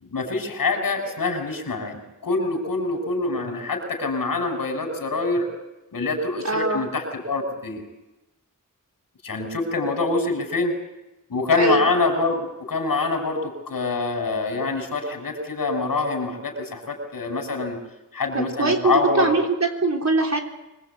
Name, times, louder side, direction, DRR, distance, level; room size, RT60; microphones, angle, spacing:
voice 1, 0.0-5.5 5.9-7.8 9.2-10.7 11.3-17.8 18.1-19.3, left 3 dB, 90° left, 3 dB, 6.0 m, -25 dB
voice 2, 6.4-6.9 11.6-11.9 18.3-20.4, right 3 dB, 55° right, 1 dB, 3.8 m, -22 dB
25.5 x 21.0 x 8.2 m, 1.0 s
wide cardioid pair, 105°, 33 cm